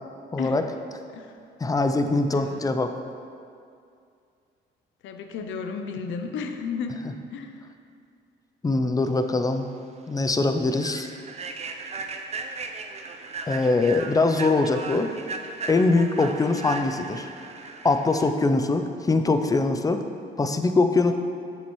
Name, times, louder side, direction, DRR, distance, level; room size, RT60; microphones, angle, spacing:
voice 1, 0.3-0.6 1.6-2.9 8.6-9.7 10.1-11.1 13.5-15.1 15.7-17.3 17.8-20.0 20.4-21.1, left 3 dB, 20° left, 7 dB, 0.5 m, -22 dB
voice 2, 2.3-2.6 5.0-7.6, left 5 dB, 75° left, 6 dB, 0.6 m, -33 dB
Human voice / Train, 9.4-9.6 10.0-10.2 10.7-18.3, right 4 dB, 35° right, 0.5 m, -37 dB
7.4 x 7.0 x 3.1 m, 2.4 s
cardioid pair, 90°, 20 cm